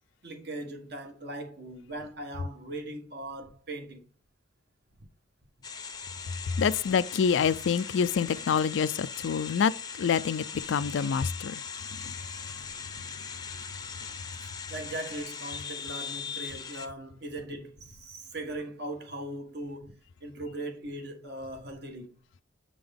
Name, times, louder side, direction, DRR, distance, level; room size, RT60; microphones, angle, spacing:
voice 1, 0.2-4.1 12.6-12.7 14.4-22.2, right 1 dB, 55° right, 1.3 m, -39 dB
sound 1, 5.6-16.9, left 6 dB, 20° left, 0.6 m, -40 dB
voice 2, 6.5-11.6 11.9-12.2 12.5-12.6, left 6 dB, 70° left, 0.3 m, -27 dB
7.9 x 3.8 x 3.4 m
head